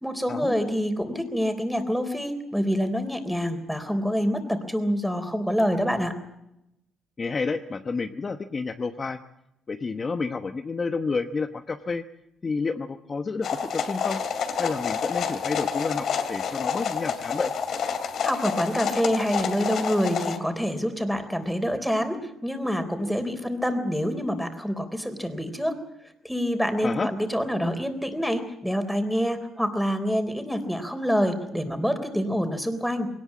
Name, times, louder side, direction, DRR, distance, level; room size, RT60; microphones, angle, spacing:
voice 1, 0.0-6.2 18.2-25.8 26.2-33.1, equal, ahead, 8 dB, 3.7 m, -26 dB
voice 2, 7.2-9.2 9.7-12.0 12.4-14.2 14.6-17.5 26.8-27.1, left 4 dB, 35° left, 8 dB, 1.0 m, -30 dB
sound 1, 13.4-20.4, left 7 dB, 65° left, 2.7 m, -29 dB
21.0 x 18.5 x 8.5 m, 0.83 s
cardioid pair, 90°, 0 cm